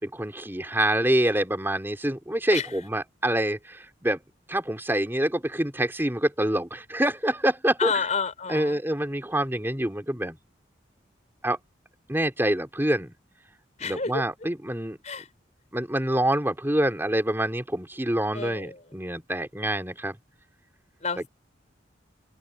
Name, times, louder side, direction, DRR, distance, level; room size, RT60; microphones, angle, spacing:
voice 1, 0.0-4.2 4.5-8.0 8.5-10.4 11.4-11.6 12.1-13.1 13.8-15.0 15.7-20.2, right 1 dB, 10° right, 3.1 m, -26 dB
voice 2, 7.8-8.8 13.8-14.2 15.0-15.3 18.3-19.0 21.0-21.3, left 5 dB, 40° left, 4.3 m, -30 dB
open air
head